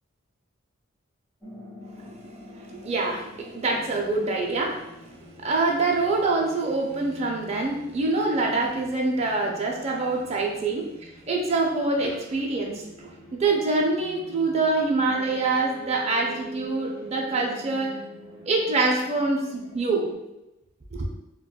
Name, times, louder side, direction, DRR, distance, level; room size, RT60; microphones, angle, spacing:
sound 1, 1.4-20.1, right 1 dB, 10° right, 0.8 m, -46 dB
voice 1, 2.7-4.9 5.4-12.8 13.3-17.9 18.5-20.1 20.9-21.1, right 3 dB, 30° right, 0 dB, 0.4 m, -25 dB
4.1 x 2.2 x 2.2 m, 0.93 s
head